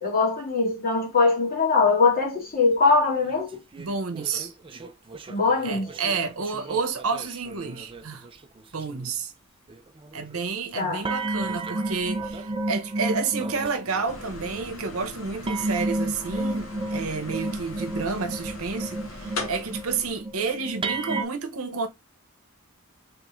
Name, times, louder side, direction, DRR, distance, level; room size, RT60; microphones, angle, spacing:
voice 1, 0.0-3.6 5.3-5.9 10.8-11.0, left 4 dB, 45° left, 1.9 m, -22 dB
sound 1, 3.3-8.4 8.7-9.1 9.7-10.3 11.0-14.6 15.5-21.2, right 2 dB, 25° right, 0.4 m, -32 dB
voice 2, 3.8-4.5 5.6-8.3 8.7-9.3 10.1-21.9, right 4 dB, 75° right, 0.8 m, -30 dB
sound 2, 14.1-20.2, left 2 dB, 65° left, 1.2 m, -39 dB
3.6 x 3.5 x 3.0 m
head